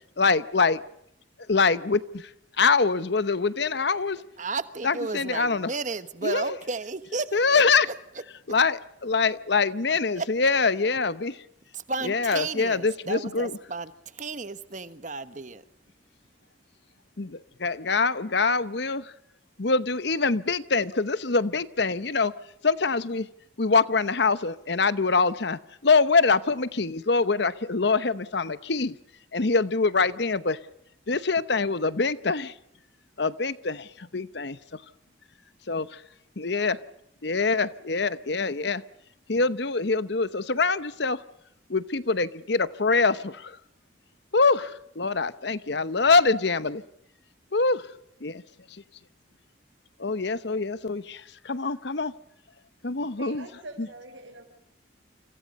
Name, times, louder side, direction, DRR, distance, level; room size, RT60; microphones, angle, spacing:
voice 1, 0.2-0.8 1.5-2.3 2.6-4.2 4.8-5.7 6.2-6.4 7.3-7.9 8.5-11.4 12.0-13.5 17.2-19.1 19.6-22.3 22.6-23.3 23.6-28.9 29.3-30.6 31.1-32.5 33.2-34.5 35.7-35.8 36.4-36.8 37.2-38.8 39.3-41.2 41.7-43.6 44.3-46.8 47.5-47.9 48.2-48.4 48.7-48.8 50.0-52.1 52.8-53.4 53.8-53.9, left 4 dB, 60° left, 0.9 m, -24 dB
voice 2, 4.4-7.9 10.1-10.3 11.7-15.6, right 3 dB, 40° right, 1.2 m, -33 dB
voice 3, 53.2-54.4, right 2 dB, 75° right, 4.9 m, -43 dB
29.5 x 26.5 x 5.4 m
head